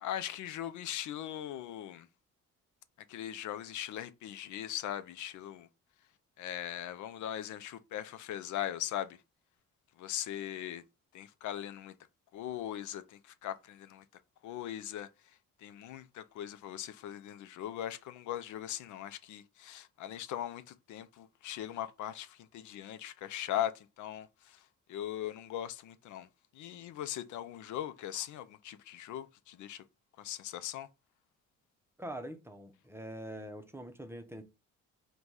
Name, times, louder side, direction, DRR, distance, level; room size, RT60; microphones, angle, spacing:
voice 1, 0.0-2.1 3.1-5.7 6.4-9.2 10.0-10.8 11.1-11.9 12.3-14.0 14.4-15.1 15.6-24.6 24.9-26.3 26.5-29.8 30.2-30.9, left 11 dB, 75° left, 0.5 m, -40 dB
voice 2, 32.0-34.4, right 1 dB, 10° right, 0.6 m, -44 dB
3.9 x 2.2 x 4.6 m
cardioid pair, 90°, 30 cm